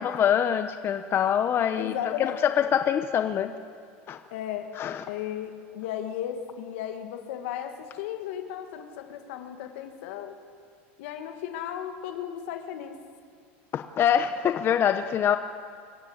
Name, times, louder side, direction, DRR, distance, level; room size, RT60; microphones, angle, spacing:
voice 1, 0.0-1.9 2.2-3.5 4.1-4.2 4.8-5.0 13.7-15.4, left 9 dB, 35° left, 8 dB, 0.8 m, -24 dB
voice 2, 1.7-2.4 4.3-4.7 5.1-10.3 11.0-13.0, left 10 dB, 75° left, 6 dB, 2.1 m, -35 dB
25.5 x 14.5 x 8.0 m, 2.2 s
supercardioid pair, 125°, 7 cm